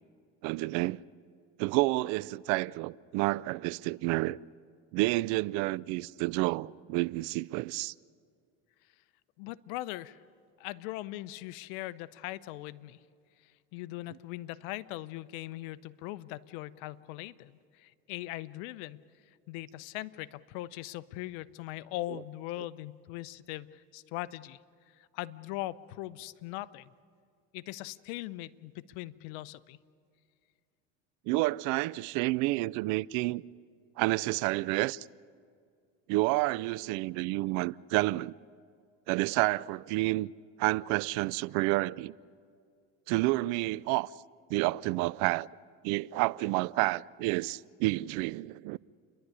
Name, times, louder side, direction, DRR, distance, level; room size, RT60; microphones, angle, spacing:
voice 1, 0.4-1.0 1.6-4.4 4.9-7.9 31.3-33.4 34.0-35.1 36.1-38.3 39.1-40.3 40.6-42.1 43.1-44.1 44.5-45.5 45.8-48.8, right 20 dB, 65° right, 0.5 m, -29 dB
voice 2, 9.4-10.2 10.6-13.0 13.4-19.0 19.5-24.6 25.0-26.9 27.5-29.8, left 16 dB, 70° left, 0.8 m, -40 dB
29.5 x 11.5 x 9.8 m
supercardioid pair, 115°, 32 cm